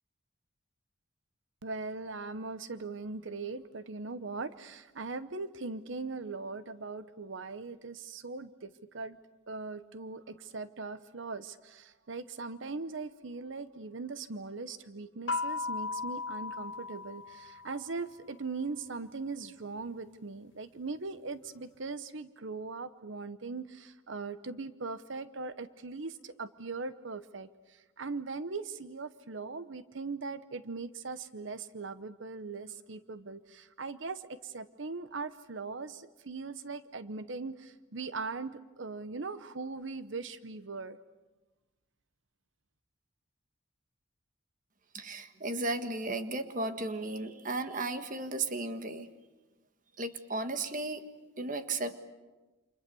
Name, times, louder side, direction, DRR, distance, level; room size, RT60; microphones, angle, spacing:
voice 1, 1.6-9.2 9.5-41.0, right 4 dB, 65° right, 13 dB, 0.9 m, -40 dB
sound 1, 15.3-18.0, left 4 dB, 60° left, 0.8 m, -36 dB
voice 2, 44.9-49.1 50.0-51.0 51.4-52.0, right 2 dB, 40° right, 9 dB, 1.6 m, -35 dB
29.5 x 27.0 x 7.0 m, 1.1 s
head